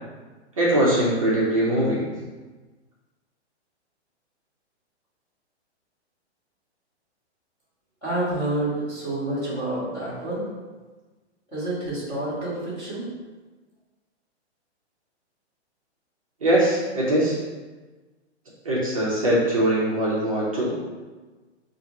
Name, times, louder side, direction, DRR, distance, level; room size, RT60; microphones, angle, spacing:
voice 1, 0.6-2.1 16.4-17.4 18.6-20.7, right 1 dB, 30° right, -7 dB, 0.6 m, -21 dB
voice 2, 8.0-10.4 11.5-13.1, right 1 dB, 5° left, -16 dB, 0.6 m, -28 dB
4.8 x 2.5 x 2.8 m, 1.3 s
hypercardioid pair, 180°, 34 cm